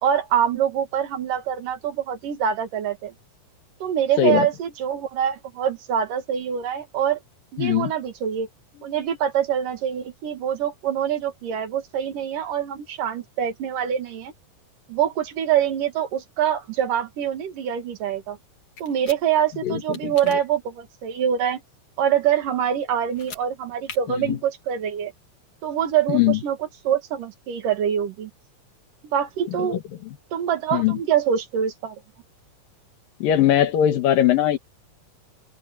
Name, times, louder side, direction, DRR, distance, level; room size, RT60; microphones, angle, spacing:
voice 1, 0.0-3.1 3.8-7.2 7.5-8.5 8.8-14.3 14.9-18.4 18.8-21.6 22.0-25.1 25.6-26.6 26.9-28.3 29.0-29.8 30.3-32.0, right 9 dB, 70° right, 3.5 m, -24 dB
voice 2, 7.6-7.9 19.6-20.1 24.2-24.4 26.1-26.4 29.6-30.2 30.7-31.0 33.2-34.6, left 11 dB, 80° left, 3.2 m, -21 dB
sound 1, 18.8-19.2 19.9-20.4 23.1-23.4 23.8-24.0, left 6 dB, 60° left, 4.3 m, -39 dB
open air
omnidirectional pair, 4.0 m